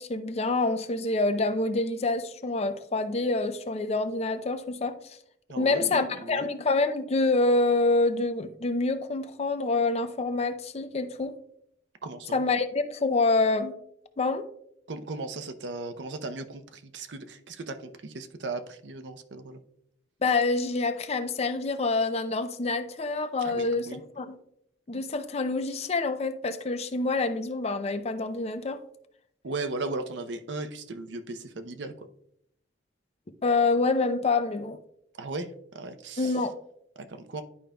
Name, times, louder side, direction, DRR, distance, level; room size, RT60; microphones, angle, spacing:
voice 1, 0.0-5.0 5.6-11.3 12.3-13.7 14.2-14.5 20.2-24.4 24.9-28.8 33.4-34.8 36.2-36.5, left 3 dB, 35° left, 10 dB, 0.5 m, -26 dB
voice 2, 5.5-6.5 12.0-12.4 14.9-19.6 23.4-24.0 29.4-32.1 35.2-35.5 35.7-36.4 37.1-37.4, right 3 dB, 80° right, 8 dB, 0.7 m, -37 dB
11.0 x 5.0 x 2.3 m, 0.72 s
head